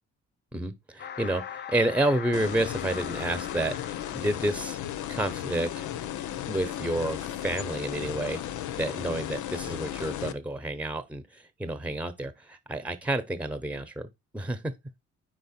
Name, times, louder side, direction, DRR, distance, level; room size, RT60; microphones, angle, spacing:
voice 1, 0.5-4.8 5.1-5.9 6.5-8.4 8.8-14.1 14.3-14.7, right 1 dB, 5° right, 0.9 m, -30 dB
sound 1, 1.0-5.7 6.0-6.2, left 8 dB, 35° left, 0.5 m, -42 dB
sound 2, 2.3-10.3, left 11 dB, 80° left, 0.7 m, -35 dB
4.7 x 4.6 x 4.3 m
cardioid pair, 90°, 30 cm